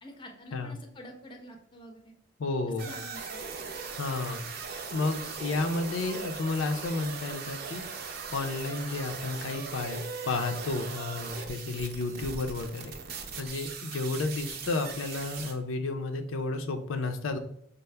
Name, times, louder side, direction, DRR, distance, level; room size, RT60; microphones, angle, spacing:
voice 1, 0.0-2.1 2.8-3.4, equal, 25° left, 4 dB, 0.5 m, -47 dB
voice 2, 2.4-2.9 4.0-12.9 13.4-17.4, left 3 dB, 85° left, 5 dB, 0.5 m, -32 dB
sound 1, 2.8-15.5, right 5 dB, 50° right, 0.5 m, -39 dB
5.4 x 2.0 x 3.3 m, 0.67 s
head